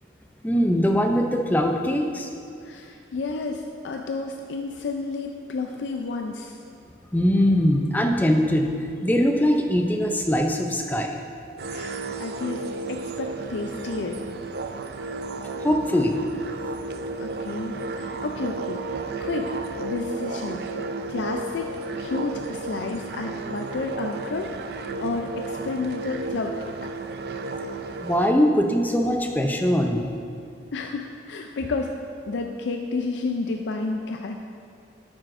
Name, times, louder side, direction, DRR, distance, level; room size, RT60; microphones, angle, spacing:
voice 1, 0.4-2.3 7.1-11.2 15.6-16.2 28.0-30.1, equal, 10° left, 3 dB, 0.4 m, -22 dB
voice 2, 2.6-6.6 11.6-14.2 17.2-19.5 19.8-20.6 21.1-21.7 22.0-26.8 30.7-31.9 32.3-34.4, left 3 dB, 80° left, 3 dB, 0.4 m, -31 dB
sound 1, 11.6-28.3, right 3 dB, 55° right, 0.3 m, -33 dB
9.5 x 7.5 x 2.5 m, 2.4 s
head